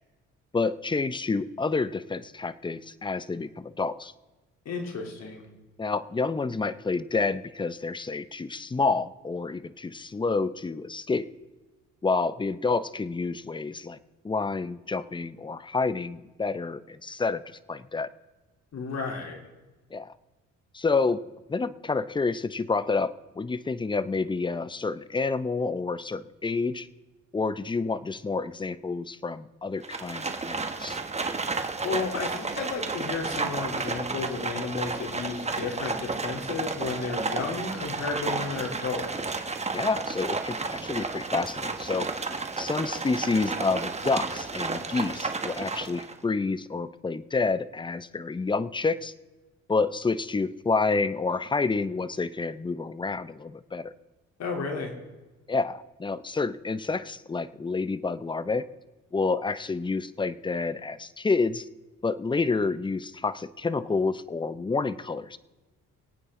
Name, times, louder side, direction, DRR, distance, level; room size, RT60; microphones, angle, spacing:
voice 1, 0.5-4.1 5.8-11.3 12.0-14.0 14.2-17.4 17.7-18.1 19.9-20.1 20.7-21.2 21.5-26.9 27.3-31.0 39.7-42.1 42.6-49.1 49.7-53.9 55.5-58.7 59.1-61.7 62.0-65.4, left 4 dB, 15° left, 15 dB, 0.6 m, -29 dB
voice 2, 4.6-5.4 18.7-19.4 31.8-39.1 54.4-54.9, left 4 dB, 60° left, 1 dB, 3.2 m, -32 dB
Livestock farm animals working animals, 29.8-46.2, right 4 dB, 20° right, 1.2 m, -32 dB
24.0 x 8.9 x 3.7 m, 1.2 s
cardioid pair, 90°, 30 cm